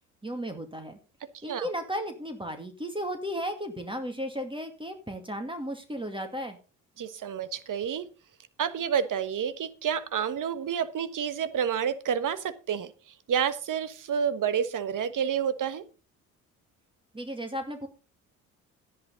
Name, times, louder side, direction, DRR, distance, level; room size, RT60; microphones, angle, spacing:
voice 1, 0.2-1.0 1.4-6.6 17.1-17.9, equal, 10° right, 6 dB, 2.2 m, -34 dB
voice 2, 1.3-1.7 7.0-8.1 8.6-15.8, right 8 dB, 45° right, 13 dB, 1.3 m, -29 dB
12.0 x 10.5 x 3.9 m, 0.34 s
hypercardioid pair, 55°, 42 cm